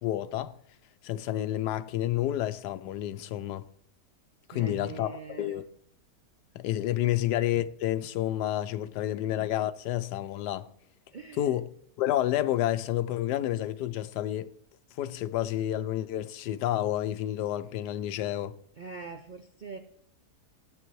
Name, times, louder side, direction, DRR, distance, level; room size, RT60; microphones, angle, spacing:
voice 1, 0.0-0.5 1.0-3.6 4.5-5.6 6.5-10.7 11.4-11.7 12.0-14.5 15.0-18.5, left 13 dB, 85° left, 1.2 m, -30 dB
voice 2, 4.5-5.6 11.1-11.5 18.8-19.8, right 5 dB, 75° right, 0.4 m, -43 dB
15.5 x 9.2 x 3.1 m
omnidirectional pair, 1.7 m